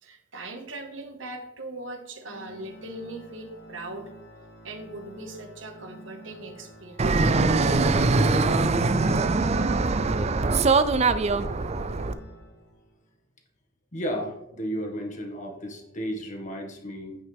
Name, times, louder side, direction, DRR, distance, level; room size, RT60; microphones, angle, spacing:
voice 1, 0.0-4.1 4.6-7.2, right 2 dB, 90° right, 4 dB, 1.6 m, -40 dB
Organ, 2.2-13.0, right 1 dB, 80° left, 2.5 m, -49 dB
Fixed-wing aircraft airplane, 7.0-12.1, right 3 dB, 35° right, 0.5 m, -22 dB
voice 2, 13.9-17.2, equal, 40° left, 2 dB, 1.8 m, -33 dB
9.3 x 8.9 x 3.5 m, 0.85 s
head